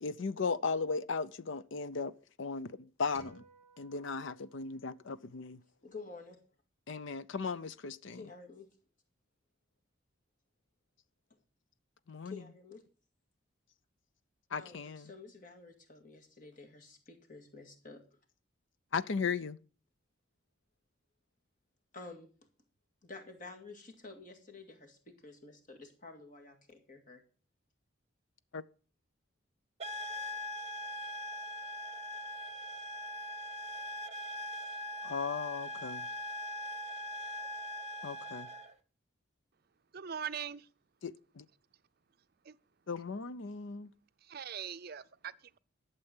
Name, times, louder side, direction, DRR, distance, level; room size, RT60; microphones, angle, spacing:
voice 1, 0.0-2.1 2.4-3.4 3.8-5.6 6.9-8.2 12.1-12.4 14.5-15.1 18.9-19.6 28.5-28.6 35.0-36.0 38.0-38.5 41.0-41.4 42.9-43.9, left 5 dB, 65° left, 0.6 m, -36 dB
sound 1, 3.1-5.6, right 1 dB, 85° left, 5.3 m, -59 dB
voice 2, 5.8-6.4 8.1-8.7 12.2-12.8 14.6-18.0 21.9-22.3 23.0-27.2, left 3 dB, 40° left, 2.1 m, -50 dB
sound 2, 29.8-38.7, left 1 dB, 30° right, 0.9 m, -41 dB
voice 3, 39.9-40.7 42.5-42.6 44.3-45.6, right 8 dB, 50° right, 0.5 m, -41 dB
12.0 x 6.9 x 7.2 m
head